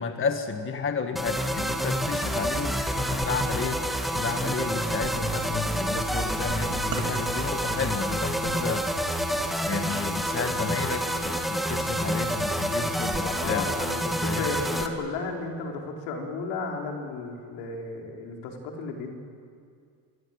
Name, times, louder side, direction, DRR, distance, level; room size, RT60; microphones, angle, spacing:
voice 1, 0.0-3.9 4.1-8.9 9.6-13.7 14.3-14.5, left 5 dB, 30° left, 6 dB, 1.6 m, -32 dB
sound 1, 1.2-14.9, equal, ahead, 2.1 m, -28 dB
sound 2, 5.0-5.5 6.4-7.1 7.6-7.7 8.4-8.8 11.2-11.4 13.1-13.6 14.7-15.1, right 4 dB, 25° right, 6.1 m, -42 dB
sound 3, 6.7-10.5, right 6 dB, 50° right, 3.5 m, -42 dB
voice 2, 13.2-19.2, left 3 dB, 75° left, 1 dB, 4.9 m, -34 dB
27.0 x 22.5 x 9.0 m, 2.3 s
cardioid pair, 125°, 44 cm